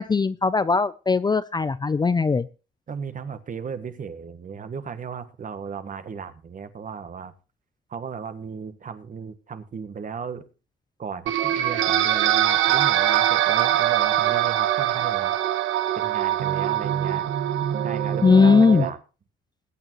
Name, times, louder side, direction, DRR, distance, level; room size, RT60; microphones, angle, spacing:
voice 1, 0.0-2.4 18.2-18.8, left 4 dB, 20° left, 15 dB, 0.5 m, -19 dB
voice 2, 2.9-7.3 7.9-10.4 11.0-15.4 15.9-17.3 17.8-19.0, right 6 dB, 45° right, 11 dB, 1.4 m, -35 dB
sound 1, 11.3-18.9, right 12 dB, 80° right, 1.2 m, -23 dB
21.0 x 8.9 x 3.1 m, 0.32 s
cardioid pair, 105°, 20 cm